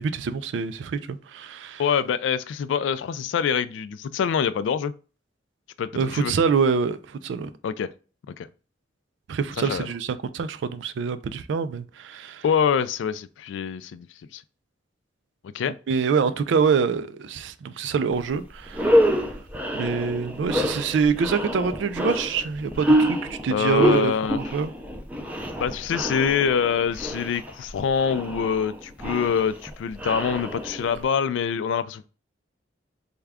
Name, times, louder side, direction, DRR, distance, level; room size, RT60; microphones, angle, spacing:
voice 1, 0.0-1.8 5.9-7.5 9.3-12.4 15.6-19.1 19.7-24.7, right 5 dB, 75° right, 0.3 m, -25 dB
voice 2, 1.8-4.9 5.8-6.3 7.6-7.9 8.4-8.5 9.6-9.9 12.4-14.1 14.3-14.4 15.5-15.7 23.5-24.4 25.6-32.1, left 7 dB, 85° left, 0.3 m, -25 dB
sound 1, 18.2-18.3 18.7-31.0, equal, 10° right, 0.4 m, -26 dB
3.5 x 2.2 x 3.4 m
head